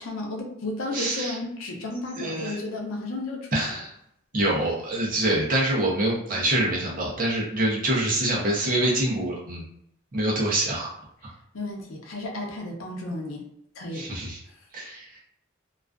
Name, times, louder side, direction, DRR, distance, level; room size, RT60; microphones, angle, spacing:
voice 1, 0.0-3.8 11.5-13.4 13.8-14.1 14.5-14.6, left 2 dB, 85° left, 1 dB, 0.6 m, -33 dB
voice 2, 0.9-1.4 2.2-2.6 3.5-3.9 4.3-9.6 10.1-10.9 13.9-14.4 14.7-15.1, right 1 dB, 40° right, -4 dB, 0.6 m, -25 dB
2.4 x 2.3 x 2.2 m, 0.74 s
head